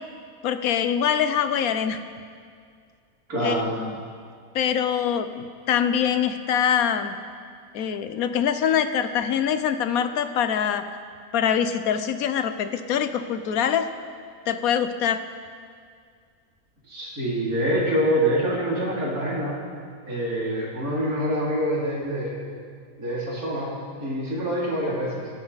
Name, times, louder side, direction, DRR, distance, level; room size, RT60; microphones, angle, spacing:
voice 1, 0.4-2.0 3.4-4.0 4.5-7.2 7.7-10.8 11.3-13.9 14.5-15.2, left 8 dB, 75° left, 10 dB, 1.2 m, -24 dB
voice 2, 3.3-3.8 16.9-19.6 20.1-22.4 23.0-23.7 24.0-25.3, equal, 75° right, -5 dB, 3.6 m, -25 dB
24.0 x 10.5 x 4.1 m, 2.1 s
omnidirectional pair, 1.5 m